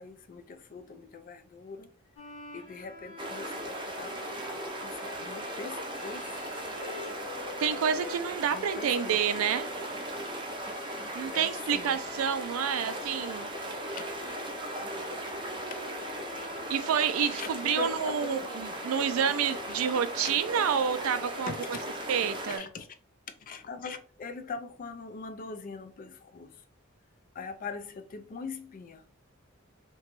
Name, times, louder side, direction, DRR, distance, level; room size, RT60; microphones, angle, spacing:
voice 1, 0.0-1.9 2.5-4.1 4.8-6.6 8.5-9.2 11.3-12.0 13.9-14.0 15.5-15.8 17.3-18.5 20.2-20.3 21.5-21.8 22.5-22.9 23.4-26.6 27.3-29.0, left 4 dB, 40° left, 0.3 m, -41 dB
Bowed string instrument, 2.2-19.6, left 2 dB, 80° left, 1.0 m, -48 dB
sound 1, 3.2-22.6, right 1 dB, 25° right, 0.5 m, -38 dB
voice 2, 7.6-9.7 11.1-13.5 16.7-21.5 22.1-22.6, right 7 dB, 80° right, 0.3 m, -28 dB
2.9 x 2.2 x 2.9 m
head